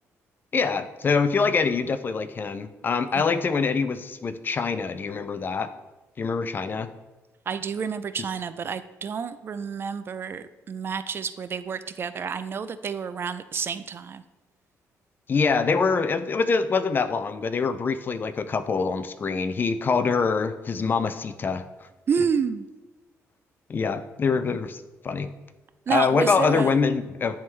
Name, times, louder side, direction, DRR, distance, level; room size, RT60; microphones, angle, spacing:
voice 1, 0.5-5.7 6.2-6.9 15.3-21.6 23.7-25.3 25.9-27.4, left 5 dB, 35° left, 12 dB, 0.4 m, -24 dB
voice 2, 3.1-3.4 7.5-14.2 22.1-22.7 25.9-26.7, right 6 dB, 45° right, 12 dB, 0.3 m, -29 dB
10.5 x 3.6 x 3.2 m, 1.1 s
cardioid pair, 100°, 6 cm